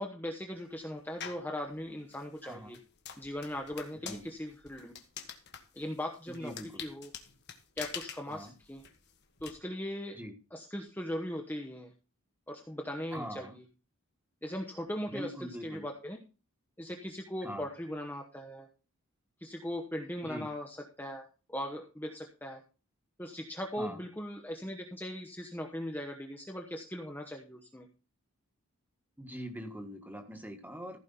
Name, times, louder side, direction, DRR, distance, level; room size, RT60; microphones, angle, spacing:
voice 1, 0.0-2.8 3.2-4.9 5.8-6.5 6.8-7.1 7.8-8.8 9.4-10.2 10.5-11.9 12.5-13.6 14.4-16.2 16.8-18.7 19.4-22.6 23.2-27.9, left 1 dB, 10° left, 3 dB, 1.0 m, -39 dB
sound 1, 1.2-1.5 2.1-9.5, left 8 dB, 50° left, 1.5 m, -46 dB
voice 2, 2.4-2.8 4.0-4.3 6.4-6.9 8.3-8.5 10.1-10.3 13.1-13.6 15.1-15.9 17.4-17.7 20.2-20.5 23.7-24.0 29.2-31.0, equal, 10° right, 5 dB, 1.6 m, -42 dB
15.0 x 5.3 x 5.6 m, 0.33 s
head